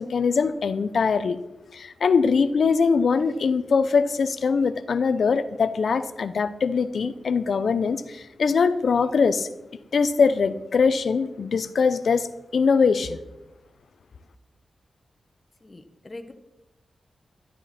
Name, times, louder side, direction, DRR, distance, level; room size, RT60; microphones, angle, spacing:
voice 1, 0.0-1.4 1.7-9.5 9.9-12.3 12.5-13.2, left 5 dB, 65° left, 12 dB, 0.7 m, -22 dB
voice 2, 15.6-16.3, left 2 dB, 25° left, 7 dB, 1.2 m, -42 dB
12.5 x 12.5 x 4.3 m, 1.0 s
wide cardioid pair, 140°, 0 cm